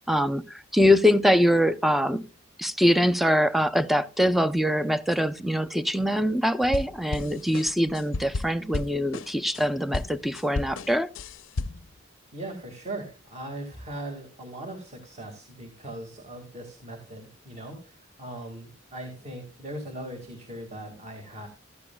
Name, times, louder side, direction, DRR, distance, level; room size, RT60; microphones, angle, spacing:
voice 1, 0.1-2.2 2.6-11.1, equal, ahead, 0.5 m, -23 dB
sound 1, 6.6-9.6 9.9-11.9, left 3 dB, 90° left, 0.6 m, -33 dB
voice 2, 12.3-21.5, right 1 dB, 35° right, 1.9 m, -39 dB
15.0 x 13.0 x 2.2 m
head